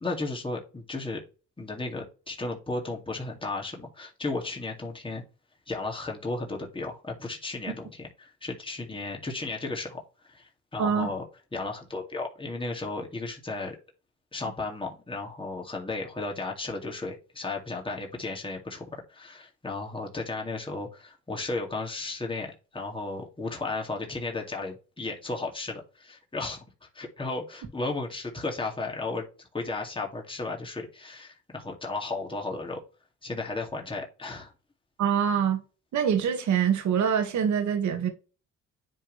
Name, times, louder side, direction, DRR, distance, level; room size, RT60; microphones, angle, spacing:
voice 1, 0.0-1.2 1.6-5.2 5.7-11.2 11.5-13.8 14.3-26.6 26.9-29.2 29.5-32.8 33.2-34.5, left 3 dB, 15° left, 2.3 m, -34 dB
voice 2, 10.8-11.1 35.0-35.6 35.9-38.1, right 8 dB, 70° right, 1.8 m, -24 dB
10.0 x 3.6 x 3.2 m
cardioid pair, 90°, 30 cm